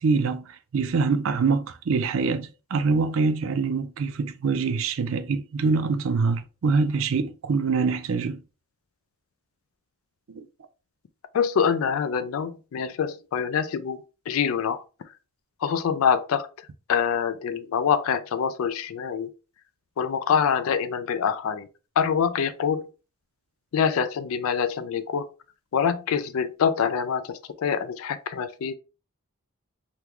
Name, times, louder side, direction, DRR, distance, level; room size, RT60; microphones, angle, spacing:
voice 1, 0.0-8.4 10.3-10.5, right 4 dB, 65° right, 0.4 m, -25 dB
voice 2, 11.3-14.8 15.6-16.5 16.9-19.3 20.0-21.7 22.0-22.9 23.7-25.3 25.7-28.7, left 7 dB, 75° left, 0.3 m, -25 dB
3.6 x 2.2 x 2.9 m
head